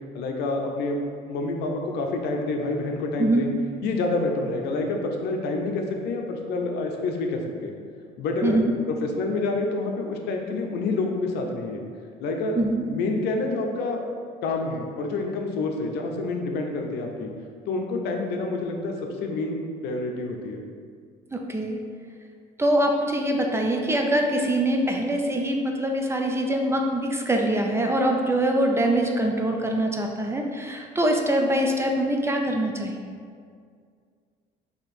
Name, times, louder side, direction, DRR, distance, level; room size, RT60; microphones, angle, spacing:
voice 1, 0.1-1.0 1.3-3.5 3.8-7.7 8.2-8.6 8.9-11.8 12.2-12.6 12.8-14.0 14.4-17.3 17.7-18.9 19.2-19.6 19.8-20.6, left 3 dB, 80° left, 2 dB, 0.6 m, -28 dB
voice 2, 8.4-8.7 12.5-12.8 21.3-21.8 22.6-33.1, right 1 dB, 15° right, 2 dB, 0.5 m, -24 dB
4.4 x 2.9 x 4.2 m, 2.1 s
cardioid pair, 110°, 17 cm